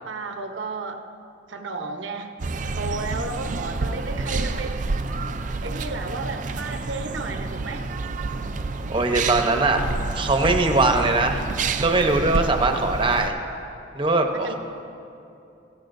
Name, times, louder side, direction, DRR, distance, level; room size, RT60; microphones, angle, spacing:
voice 1, 0.1-1.0 1.5-2.3 2.8-4.8 5.6-7.9 8.3-8.4 14.3-14.6, right 3 dB, 85° right, 5 dB, 0.9 m, -33 dB
sound 1, 2.4-13.3, right 3 dB, 40° right, 0.4 m, -29 dB
voice 2, 8.9-9.8 10.1-11.4 11.8-13.4 13.9-14.6, right 2 dB, 25° right, 4 dB, 0.8 m, -21 dB
16.0 x 15.5 x 2.6 m, 2.7 s
head